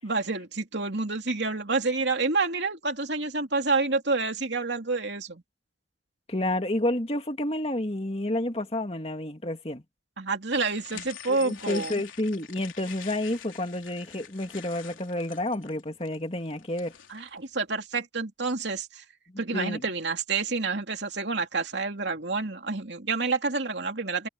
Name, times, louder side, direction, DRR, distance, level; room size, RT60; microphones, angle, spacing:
voice 1, 0.0-5.4 10.2-11.9 17.1-19.0 19.4-24.3, right 3 dB, 60° right, 3.0 m, -28 dB
voice 2, 6.3-9.8 10.9-11.0 11.3-16.9 19.5-19.8, left 1 dB, 30° left, 2.3 m, -30 dB
sound 1, 10.5-17.3, left 9 dB, 80° left, 3.7 m, -46 dB
head